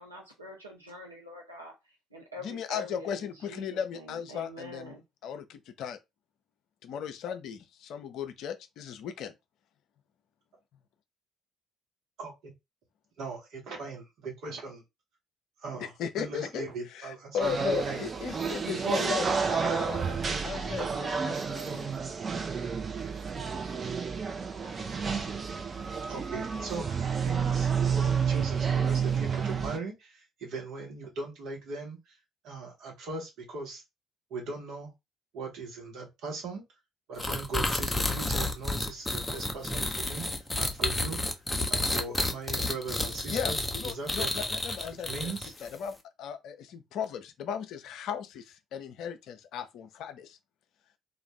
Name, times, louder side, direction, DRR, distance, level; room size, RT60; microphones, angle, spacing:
voice 1, 0.0-5.0, left 1 dB, 90° right, 0.7 m, -46 dB
voice 2, 2.4-5.0 5.2-6.0 6.8-9.3 16.0-16.7 17.3-21.9 43.3-45.3 45.6-50.4, left 7 dB, 60° left, 0.4 m, -36 dB
voice 3, 12.2-12.5 13.2-14.8 15.6-18.1 20.4-20.8 26.1-33.8 34.3-34.9 35.3-36.8 37.1-44.3 44.9-45.5, right 3 dB, 60° right, 1.1 m, -40 dB
sound 1, 17.4-29.8, right 6 dB, 35° right, 0.5 m, -30 dB
sound 2, 37.2-45.7, left 2 dB, 15° left, 0.6 m, -31 dB
2.4 x 2.3 x 3.1 m
figure-of-eight pair, 50°, 0 cm